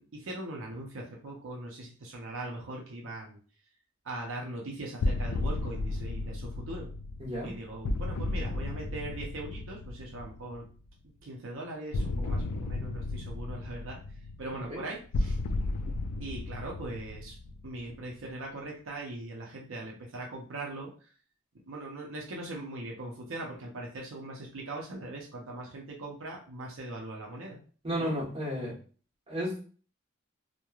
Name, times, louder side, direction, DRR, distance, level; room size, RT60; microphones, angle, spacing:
voice 1, 0.1-3.4 4.0-6.9 7.4-10.7 11.2-14.0 14.4-15.4 16.2-17.4 17.6-20.9 21.7-27.6 28.0-28.2, right 2 dB, 80° right, -1 dB, 0.6 m, -40 dB
sound 1, 5.0-10.8 11.9-18.2, left 2 dB, 80° left, 0.3 m, -34 dB
voice 2, 7.2-7.5 14.7-14.8 27.8-28.8 29.3-29.6, equal, 30° right, -5 dB, 1.0 m, -33 dB
3.0 x 2.1 x 2.3 m, 0.40 s
head